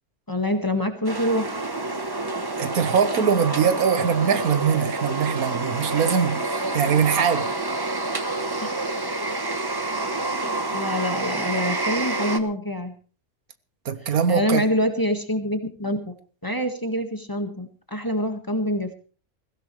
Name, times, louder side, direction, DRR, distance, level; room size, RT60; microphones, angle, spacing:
voice 1, 0.3-1.6 10.1-12.9 14.3-16.1 16.4-18.9, equal, 15° left, 1.6 m, -26 dB
sound 1, 1.0-12.4, right 2 dB, 20° right, 1.0 m, -28 dB
voice 2, 2.6-7.5 13.8-14.7, right 7 dB, 85° right, 1.6 m, -22 dB
21.5 x 16.0 x 3.2 m
omnidirectional pair, 1.5 m